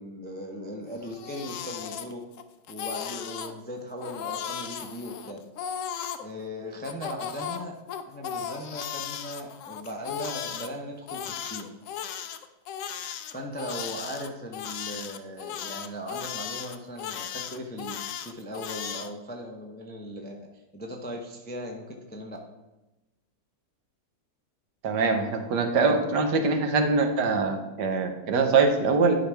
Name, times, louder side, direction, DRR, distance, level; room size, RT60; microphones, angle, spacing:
voice 1, 0.0-2.2 2.7-5.4 6.2-7.8 8.1-11.7 13.3-22.4, equal, 15° left, 1 dB, 0.4 m, -38 dB
Crying sobbing, 0.9-2.4 2.7-3.5 4.0-6.2 6.8-10.7 11.1-19.1, left 8 dB, 70° left, 0.8 m, -36 dB
voice 2, 24.8-29.1, right 4 dB, 75° right, 5 dB, 1.5 m, -23 dB
11.0 x 5.0 x 3.4 m, 1.0 s
omnidirectional pair, 1.8 m